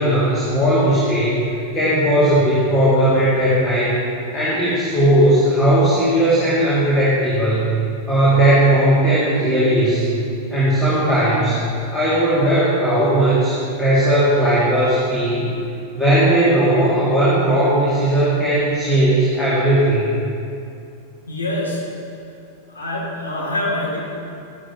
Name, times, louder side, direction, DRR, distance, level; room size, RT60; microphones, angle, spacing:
voice 1, 0.0-1.4 1.7-4.0 4.3-7.8 8.1-10.1 10.5-11.6 11.9-15.5 15.9-20.1, right 1 dB, 15° left, -9 dB, 2.4 m, -17 dB
voice 2, 21.3-21.8 22.7-24.0, left 1 dB, 75° left, -5 dB, 2.7 m, -25 dB
12.0 x 11.0 x 3.0 m, 2.5 s
figure-of-eight pair, 90°, 0 cm